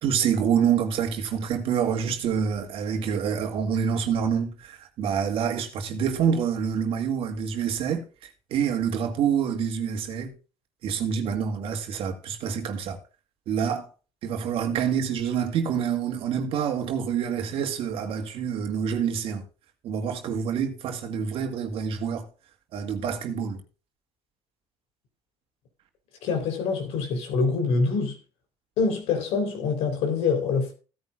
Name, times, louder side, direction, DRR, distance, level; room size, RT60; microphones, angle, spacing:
voice 1, 0.0-10.3 10.8-13.0 13.5-13.9 14.2-19.4 19.8-22.3 22.7-23.6, right 7 dB, 65° right, 2.1 m, -27 dB
voice 2, 26.2-28.2 28.8-30.7, left 4 dB, 80° left, 3.7 m, -25 dB
16.0 x 9.6 x 2.4 m
cardioid pair, 120°, 10 cm